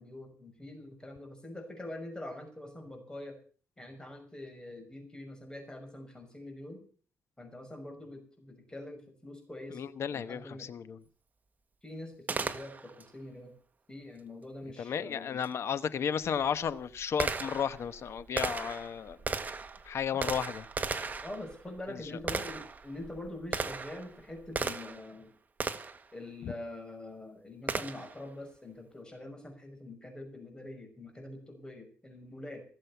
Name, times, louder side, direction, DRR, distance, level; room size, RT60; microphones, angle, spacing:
voice 1, 0.0-3.4 3.8-6.8 7.4-9.8 10.1-10.7 11.8-13.5 13.9-15.5 21.2-25.3 26.1-32.7, left 1 dB, 15° left, 4 dB, 5.9 m, -44 dB
voice 2, 9.7-11.0 14.8-19.2 19.8-20.7 21.9-22.0, left 7 dB, 65° left, 14 dB, 1.1 m, -33 dB
Gunshot gunfire, 12.3-13.1 15.4-15.5 16.2-25.1 25.6-26.1 27.7-28.2, right 4 dB, 35° right, 1.5 m, -36 dB
18.0 x 7.7 x 8.3 m, 0.43 s
cardioid pair, 95°, 5 cm